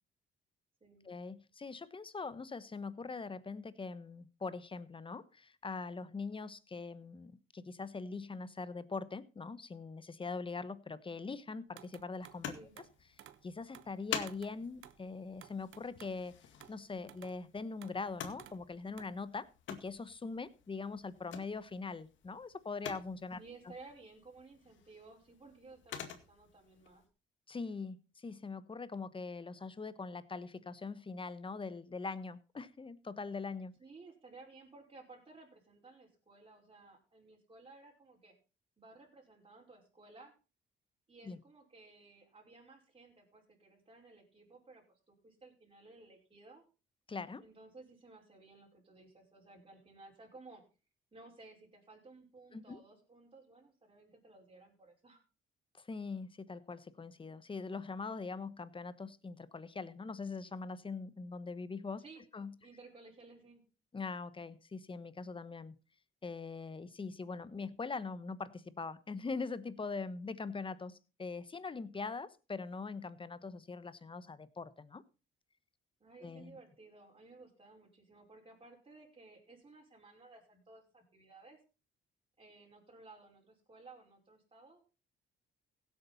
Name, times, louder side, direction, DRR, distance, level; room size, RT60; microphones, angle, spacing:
voice 1, 1.0-12.5 13.4-16.4 16.7-23.4 27.5-33.7 41.2-41.4 47.1-47.4 52.5-52.8 55.7-62.0 62.3-62.5 63.9-65.8 66.2-75.0 76.2-76.6, left 4 dB, 25° left, 1.1 m, -42 dB
sound 1, 11.8-12.4 12.8-13.5 13.7-14.0 14.3-15.0 15.4-16.2 16.6-16.8 17.1-17.4 17.8-18.0 18.4-18.6 18.9-19.2, right 12 dB, 80° right, 1.0 m, -56 dB
sound 2, 12.2-27.1, left 8 dB, 70° left, 2.1 m, -49 dB
voice 2, 23.4-27.0 33.8-38.3 38.8-40.3 41.1-46.6 47.4-50.6 51.1-55.2 62.0-62.2 62.6-63.6 76.0-81.6 82.4-85.0, right 3 dB, 25° right, 5.2 m, -57 dB
16.5 x 8.4 x 4.1 m
cardioid pair, 90°, 20 cm